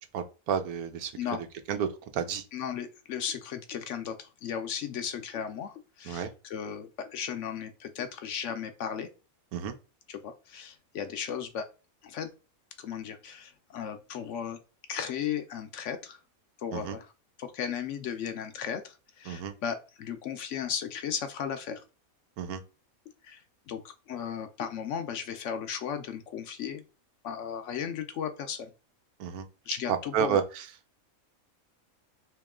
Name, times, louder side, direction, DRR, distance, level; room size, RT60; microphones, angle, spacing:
voice 1, 0.1-1.1 1.7-1.9 2.1-2.4 6.0-6.3 9.5-9.8 16.7-17.0 19.3-19.5 22.4-22.6 29.2-29.5 30.1-30.7, right 7 dB, 90° right, 8 dB, 1.2 m, -30 dB
voice 2, 2.5-9.1 10.1-11.7 12.0-12.3 12.8-14.6 14.9-16.2 16.6-17.1 17.4-21.8 23.2-26.8 27.2-28.7 29.7-30.4, left 8 dB, 65° left, 8 dB, 0.8 m, -36 dB
3.0 x 3.0 x 3.5 m, 0.32 s
omnidirectional pair, 1.5 m